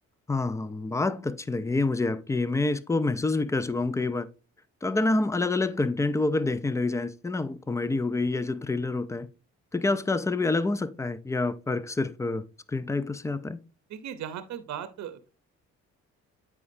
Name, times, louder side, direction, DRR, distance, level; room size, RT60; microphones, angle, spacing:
voice 1, 0.3-4.3 4.8-9.3 9.7-13.6, left 3 dB, 10° left, 0.3 m, -27 dB
voice 2, 13.9-15.3, right 9 dB, 65° right, 0.7 m, -37 dB
8.3 x 4.8 x 2.6 m
cardioid pair, 90°, 30 cm